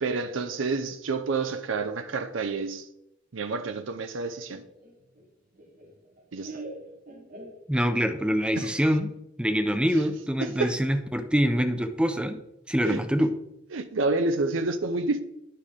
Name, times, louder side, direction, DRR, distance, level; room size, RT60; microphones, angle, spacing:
voice 1, 0.0-2.9 3.3-4.6 6.3-6.6 8.6-8.7 9.9-10.0 10.4-10.7 12.8-13.0 13.7-15.2, right 3 dB, 80° right, 9 dB, 0.6 m, -29 dB
Laughter, 4.5-8.1, right 2 dB, 45° right, 1.4 m, -44 dB
voice 2, 7.7-9.1 9.4-12.4 12.7-13.3, equal, 5° right, 8 dB, 0.6 m, -25 dB
9.5 x 6.6 x 3.6 m, 0.84 s
head